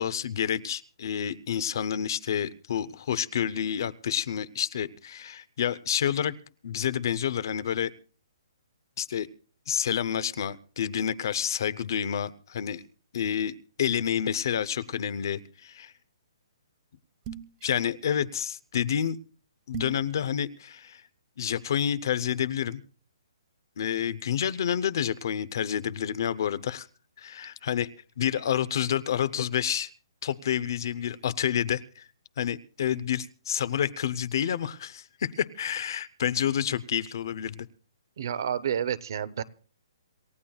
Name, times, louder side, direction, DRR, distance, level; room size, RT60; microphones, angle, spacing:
voice 1, 0.0-6.3 6.6-7.9 9.0-9.3 9.7-12.8 13.1-15.9 17.6-19.2 19.7-21.0 21.4-22.8 23.8-26.9 27.2-27.9 28.2-29.9 30.2-32.1 32.4-37.7, left 9 dB, 50° left, 16 dB, 0.7 m, -29 dB
sound 1, 17.2-17.6 19.7-20.1, right 9 dB, 20° right, 0.7 m, -37 dB
voice 2, 38.2-39.4, right 9 dB, 50° right, 17 dB, 0.8 m, -29 dB
27.5 x 15.0 x 2.3 m, 0.39 s
hypercardioid pair, 170°, 3 cm